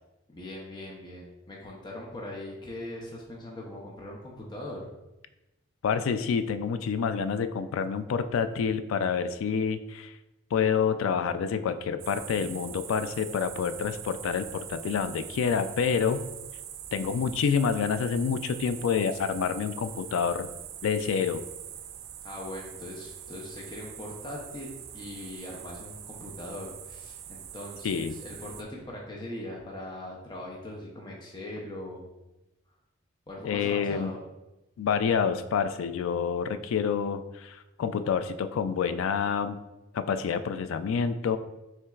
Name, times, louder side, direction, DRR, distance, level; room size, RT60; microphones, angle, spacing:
voice 1, 0.3-4.9 22.2-32.1 33.3-34.2, left 1 dB, 20° left, -2 dB, 0.5 m, -40 dB
voice 2, 5.8-10.1 10.5-16.2 16.9-20.5 20.8-21.4 27.8-28.2 33.4-34.1 34.8-39.6 39.9-41.4, left 6 dB, 80° left, 11 dB, 0.3 m, -28 dB
sound 1, 12.0-28.6, right 9 dB, 80° right, 0.4 m, -43 dB
5.9 x 3.3 x 2.4 m, 0.99 s
head